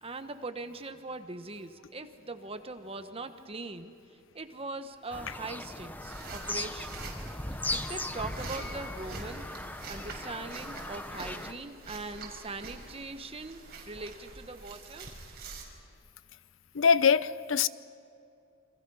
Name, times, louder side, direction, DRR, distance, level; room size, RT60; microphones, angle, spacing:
voice 1, 0.0-3.9 4.3-7.0 7.6-9.5 9.8-15.1, right 3 dB, 30° right, 1.2 m, -41 dB
Bird vocalization bird call bird song, 5.1-11.5, left 1 dB, 10° left, 0.8 m, -38 dB
sound 1, 6.0-15.6, right 3 dB, 55° right, 5.1 m, -46 dB
voice 2, 16.7-17.7, left 6 dB, 70° left, 0.6 m, -23 dB
28.5 x 25.5 x 5.6 m
head